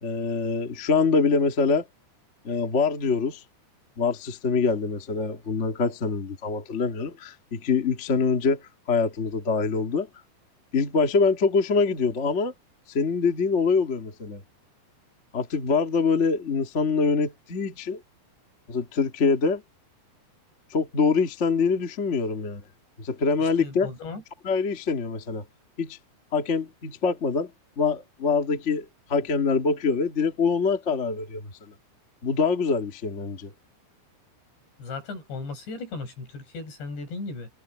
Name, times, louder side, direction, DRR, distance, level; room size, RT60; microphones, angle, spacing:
voice 1, 0.0-1.8 2.4-3.4 4.0-8.6 8.9-10.1 10.7-12.5 12.9-14.4 15.3-18.0 18.7-19.6 20.7-22.6 23.0-23.9 24.4-25.4 25.8-26.0 26.3-27.5 27.8-31.5 32.2-33.5, left 4 dB, 45° left, 0.8 m, -24 dB
voice 2, 23.4-24.2 34.8-37.5, left 3 dB, 70° left, 8.3 m, -36 dB
omnidirectional pair, 5.1 m